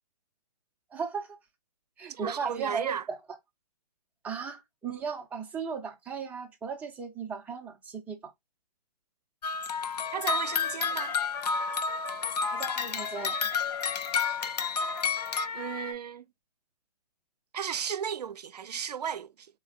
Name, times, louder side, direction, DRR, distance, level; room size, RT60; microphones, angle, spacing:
voice 1, 0.9-1.4 2.0-3.4 4.2-8.2 12.5-13.4, right 5 dB, 10° right, 0.5 m, -36 dB
voice 2, 2.1-3.0 10.1-11.2 15.5-16.3 17.5-19.3, right 8 dB, 85° right, 0.5 m, -34 dB
sound 1, 9.4-15.5, left 5 dB, 85° left, 0.5 m, -30 dB
sound 2, 9.8-15.9, left 6 dB, 30° left, 0.7 m, -41 dB
4.1 x 2.2 x 2.4 m
hypercardioid pair, 145°, 20 cm